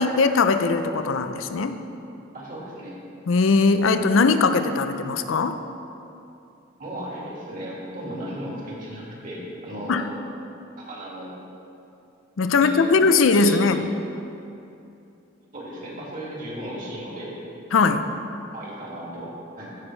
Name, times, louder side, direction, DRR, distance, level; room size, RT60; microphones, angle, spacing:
voice 1, 0.0-1.8 3.3-5.6 9.9-10.1 12.4-13.8 17.7-18.1, left 4 dB, 80° left, 9 dB, 0.5 m, -20 dB
voice 2, 2.3-2.9 6.8-10.1 10.8-11.3 12.6-13.8 15.5-17.4 18.5-19.7, right 1 dB, 45° right, -5 dB, 2.3 m, -36 dB
15.0 x 6.2 x 3.3 m, 2.7 s
head